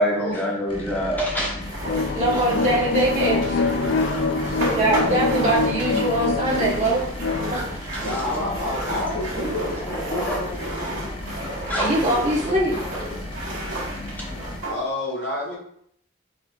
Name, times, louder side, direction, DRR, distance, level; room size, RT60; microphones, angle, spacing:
voice 1, 0.0-1.6 9.9-10.4 11.7-11.9, equal, 10° left, -4 dB, 1.0 m, -24 dB
sound 1, 0.7-14.6, left 1 dB, 25° left, 0.6 m, -35 dB
sound 2, 1.6-14.8, right 1 dB, 85° right, 1.5 m, -32 dB
sound 3, 1.9-7.5, left 4 dB, 70° left, 0.4 m, -25 dB
voice 2, 2.1-3.6 4.7-7.0 7.5-8.1 11.8-12.8, right 1 dB, 35° right, -5 dB, 1.1 m, -22 dB
voice 3, 4.4-5.7 8.0-11.0 14.2-14.4 14.7-15.5, left 2 dB, 55° left, -4 dB, 1.7 m, -30 dB
4.8 x 3.9 x 2.3 m, 0.67 s
head